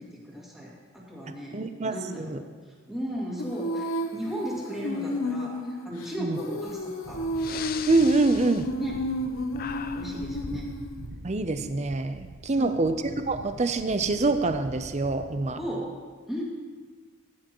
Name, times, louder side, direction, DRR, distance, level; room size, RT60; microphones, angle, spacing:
voice 1, 0.0-1.6 1.9-7.2 8.7-9.0 9.9-10.7 12.5-12.8 15.6-15.9 16.3-16.4, equal, ahead, -5 dB, 2.2 m, -36 dB
voice 2, 1.5-2.4 6.2-6.4 7.9-8.7 11.2-15.6, right 2 dB, 35° right, 9 dB, 0.6 m, -25 dB
Female singing, 3.4-11.1, left 1 dB, 80° left, 0.9 m, -32 dB
Breathing, 6.7-6.8 7.3-9.3 9.5-10.6, left 8 dB, 45° left, 0.4 m, -39 dB
sound 1, 7.0-15.8, right 2 dB, 80° right, 0.8 m, -44 dB
16.0 x 9.9 x 3.1 m, 1.5 s
head